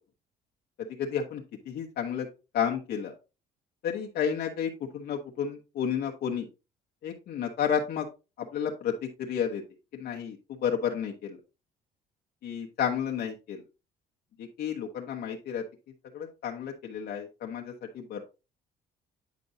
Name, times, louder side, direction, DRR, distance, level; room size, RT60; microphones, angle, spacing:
voice 1, 0.8-2.3 2.5-3.1 3.8-6.5 7.0-8.1 8.4-9.6 9.9-11.4 12.4-13.6 14.4-15.6 16.1-18.2, left 8 dB, 65° left, 0 dB, 1.1 m, -31 dB
9.2 x 5.2 x 2.7 m, 0.30 s
cardioid pair, 110°, 17 cm